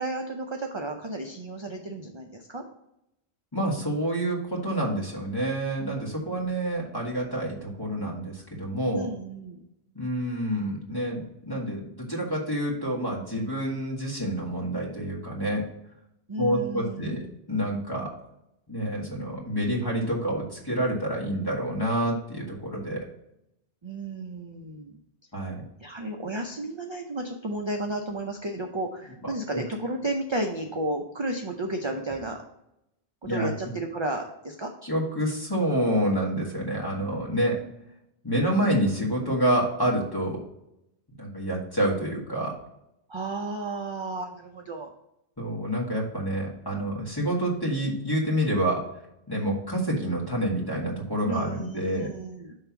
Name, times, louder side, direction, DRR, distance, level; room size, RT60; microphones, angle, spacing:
voice 1, 0.0-2.6 8.9-9.6 16.3-17.3 23.8-25.0 25.8-32.4 33.3-34.7 43.1-44.9 51.2-52.5, right 2 dB, 40° right, 2 dB, 0.4 m, -33 dB
voice 2, 3.5-9.1 9.9-15.6 16.4-17.2 17.5-18.1 18.7-23.0 25.3-25.6 29.5-29.6 33.2-33.5 34.8-37.6 38.2-40.4 41.2-42.5 45.4-48.8 49.3-52.1, right 1 dB, 20° left, -3 dB, 1.5 m, -28 dB
5.6 x 3.4 x 5.8 m, 0.82 s
omnidirectional pair, 1.1 m